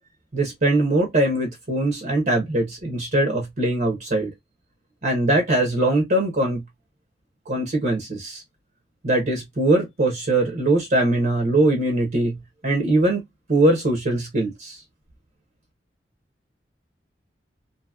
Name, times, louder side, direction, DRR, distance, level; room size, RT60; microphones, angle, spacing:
voice 1, 0.3-4.3 5.0-6.6 7.5-8.4 9.0-12.3 12.6-13.2 13.5-14.8, right 2 dB, 50° right, 0.8 m, -21 dB
2.7 x 2.7 x 2.3 m
head